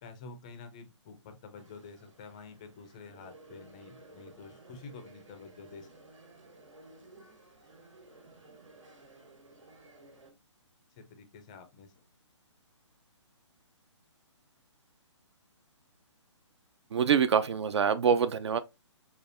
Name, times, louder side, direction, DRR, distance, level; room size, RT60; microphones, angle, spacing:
voice 1, 0.0-5.9 11.0-12.0, left 4 dB, 15° left, 0.4 m, -49 dB
sound 1, 1.5-10.3, right 2 dB, 85° right, 1.7 m, -55 dB
voice 2, 16.9-18.6, right 7 dB, 60° right, 0.4 m, -25 dB
5.0 x 2.3 x 2.5 m
hypercardioid pair, 165°, 16 cm